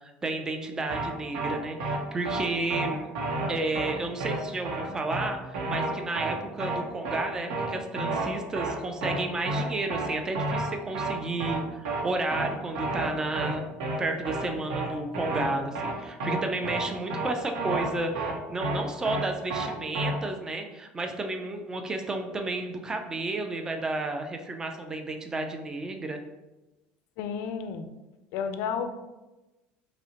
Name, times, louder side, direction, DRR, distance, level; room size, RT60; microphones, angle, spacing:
voice 1, 0.0-3.1 3.5-13.6 14.0-26.2, right 2 dB, 15° right, 4 dB, 0.4 m, -32 dB
sound 1, 0.9-1.1 1.3-1.5 1.8-2.0 2.3-2.4 2.7-2.9 3.2-3.5 3.8-3.9 4.2-4.4 4.7-4.8 5.1-5.3 5.5-5.9 6.2-6.3 6.6-6.8 7.1-7.2 7.5-7.7 8.0-8.3 8.6-8.7 9.0-9.2 9.5-9.6 9.9-10.1 10.4-10.7 10.9-11.1 11.4-11.6 11.9-12.0 12.3-12.5 12.8-13.1 13.4-13.5 13.8-14.0 14.3-14.4 14.7-14.9 15.1-15.5 15.8-15.9 16.2-16.4 16.7-16.8 17.1-17.3 17.6-17.9 18.2-18.3 18.6-18.8 19.1-19.2 19.5-19.7 20.0-20.1, right 3 dB, 85° right, 0.8 m, -30 dB
voice 2, 27.2-27.9 28.3-28.9, left 6 dB, 70° left, 8 dB, 0.4 m, -32 dB
5.3 x 2.1 x 2.8 m, 1.1 s
cardioid pair, 135°, 4 cm